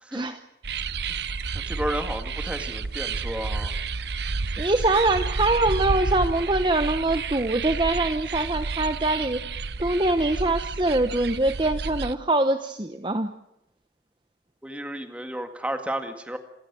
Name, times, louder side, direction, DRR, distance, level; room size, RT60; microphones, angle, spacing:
sound 1, 0.6-12.1, right 4 dB, 70° right, 0.8 m, -30 dB
voice 1, 1.5-3.7 14.6-16.4, right 1 dB, 5° right, 6 dB, 2.0 m, -32 dB
voice 2, 4.6-9.4 9.8-13.3, right 2 dB, 25° right, 8 dB, 0.9 m, -23 dB
27.5 x 16.0 x 8.4 m, 0.86 s
head